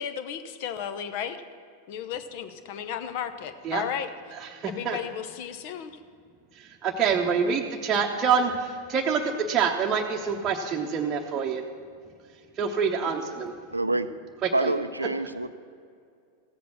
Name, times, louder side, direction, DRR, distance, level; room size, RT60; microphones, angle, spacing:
voice 1, 0.0-1.4 1.9-4.1 4.6-5.9, left 8 dB, 45° left, 10 dB, 0.8 m, -34 dB
voice 2, 4.5-5.0 6.6-11.6 12.6-13.5 14.4-14.7, right 6 dB, 25° right, 0 dB, 0.9 m, -26 dB
voice 3, 13.7-14.1 14.5-15.5, right 2 dB, 85° right, 13 dB, 0.5 m, -27 dB
15.0 x 8.2 x 6.1 m, 2.3 s
figure-of-eight pair, 90°, 0 cm